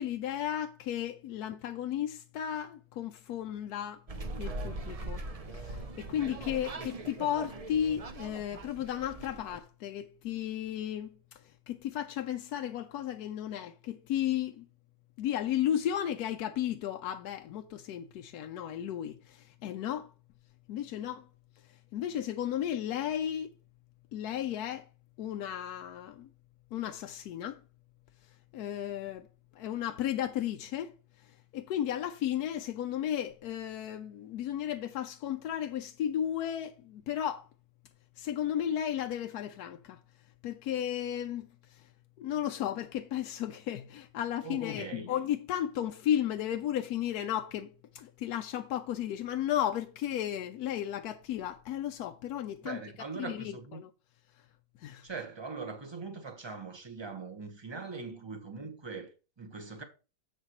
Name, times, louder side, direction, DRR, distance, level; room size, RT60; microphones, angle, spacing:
voice 1, 0.0-4.0 4.4-5.2 5.5-11.4 11.7-14.7 15.2-20.1 20.7-21.3 21.9-23.5 24.1-24.9 25.2-26.3 26.7-27.6 28.5-29.3 29.6-30.9 31.5-37.5 38.2-40.0 40.4-41.8 42.2-52.8 53.2-53.9 54.8-55.1, left 10 dB, 70° left, 1.0 m, -34 dB
sound 1, 4.1-9.6, right 2 dB, 65° right, 0.3 m, -41 dB
voice 2, 44.4-45.1 52.6-53.8 55.0-59.1 59.4-59.8, right 4 dB, 20° right, 1.1 m, -41 dB
10.0 x 7.3 x 3.0 m
omnidirectional pair, 1.8 m